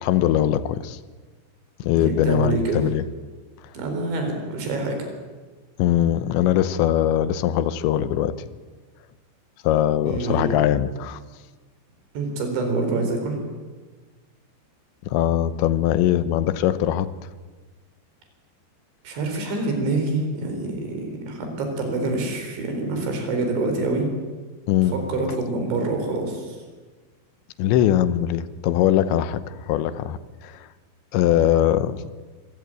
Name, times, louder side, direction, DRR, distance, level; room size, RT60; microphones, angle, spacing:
voice 1, 0.0-1.0 1.9-3.0 5.8-8.4 9.6-11.2 15.0-17.1 24.7-25.0 27.6-30.7 31.1-32.1, left 11 dB, 90° left, 14 dB, 3.2 m, -21 dB
voice 2, 2.0-2.9 3.7-5.1 10.0-10.5 12.1-13.4 19.0-24.1 24.9-26.6, right 2 dB, 85° right, 4 dB, 6.5 m, -26 dB
25.0 x 16.5 x 9.2 m, 1.3 s
omnidirectional pair, 5.1 m